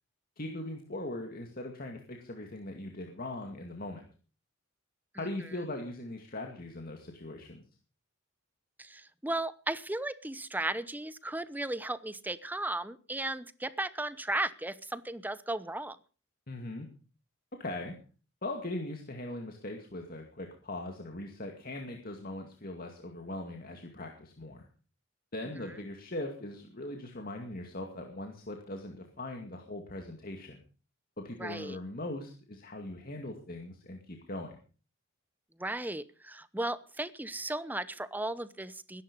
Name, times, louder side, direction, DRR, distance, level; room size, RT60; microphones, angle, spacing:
voice 1, 0.4-4.0 5.2-7.6 16.5-16.9 17.5-18.0 18.4-24.7 25.3-30.6 31.2-34.6, left 1 dB, 45° left, 3 dB, 2.2 m, -40 dB
voice 2, 8.8-16.0 31.4-31.8 35.6-39.0, right 2 dB, 10° right, 15 dB, 0.8 m, -35 dB
20.5 x 11.0 x 5.3 m, 0.38 s
head